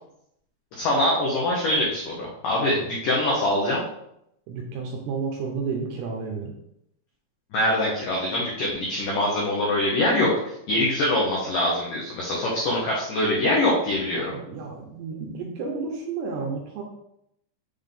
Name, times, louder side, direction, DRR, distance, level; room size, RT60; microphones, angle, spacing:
voice 1, 0.7-3.8 7.5-10.3 10.7-14.3, left 1 dB, 85° left, -4 dB, 1.8 m, -24 dB
voice 2, 4.5-6.5 14.1-16.8, right 5 dB, 80° right, 1 dB, 2.6 m, -31 dB
7.2 x 3.8 x 3.5 m, 0.77 s
omnidirectional pair, 5.3 m